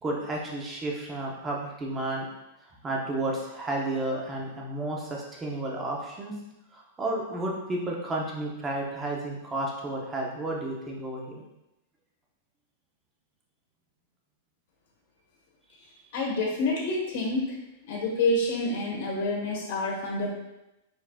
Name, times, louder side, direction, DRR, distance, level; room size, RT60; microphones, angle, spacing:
voice 1, 0.0-2.2 2.7-6.3 6.7-11.3, right 2 dB, 15° right, -2 dB, 1.0 m, -32 dB
voice 2, 16.1-17.6 17.9-20.3, left 2 dB, 60° left, -1 dB, 1.6 m, -28 dB
4.5 x 4.3 x 2.4 m, 0.91 s
supercardioid pair, 145°, 0 cm